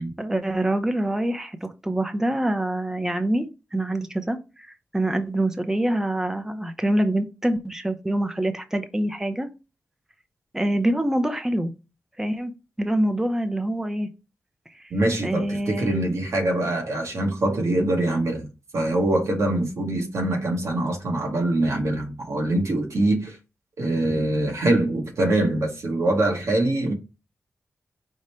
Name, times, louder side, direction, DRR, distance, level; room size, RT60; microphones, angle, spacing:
voice 1, 0.2-9.5 10.5-11.7 12.2-14.1 15.2-15.9, right 1 dB, 10° right, 0.5 m, -25 dB
voice 2, 14.9-18.5 18.7-23.4 23.8-26.9, right 1 dB, 85° right, 1.0 m, -23 dB
4.9 x 2.1 x 4.2 m
wide cardioid pair, 110°, 5 cm